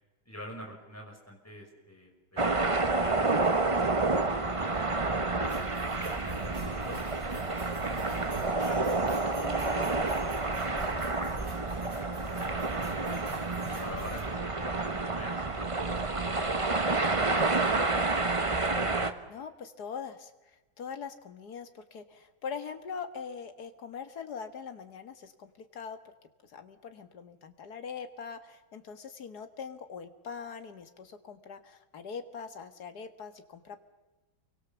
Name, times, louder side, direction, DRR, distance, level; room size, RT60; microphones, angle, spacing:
voice 1, 0.3-5.5 6.0-8.9 9.4-13.2 13.5-16.7 17.0-18.3, left 1 dB, 5° left, 0 dB, 5.6 m, -48 dB
sound 1, 2.4-19.1, right 3 dB, 20° right, 0.9 m, -29 dB
sound 2, 5.4-14.2, right 1 dB, 70° right, 5.9 m, -48 dB
voice 2, 19.3-26.0 26.4-33.8, left 6 dB, 55° left, 8 dB, 2.1 m, -42 dB
29.0 x 24.0 x 7.1 m, 1.1 s
omnidirectional pair, 2.1 m